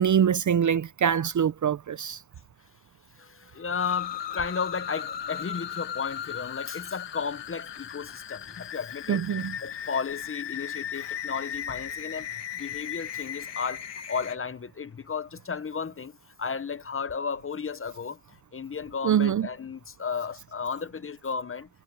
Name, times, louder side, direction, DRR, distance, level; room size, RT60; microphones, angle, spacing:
voice 1, 0.0-2.2 9.1-9.6 19.0-19.5, right 8 dB, 40° right, 0.5 m, -24 dB
voice 2, 3.2-9.2 9.6-12.3 12.5-13.8 14.1-16.1 16.4-18.2 18.5-21.7, left 6 dB, 30° left, 0.7 m, -33 dB
sound 1, 3.8-14.4, left 9 dB, 65° left, 1.5 m, -37 dB
cardioid pair, 110°, 46 cm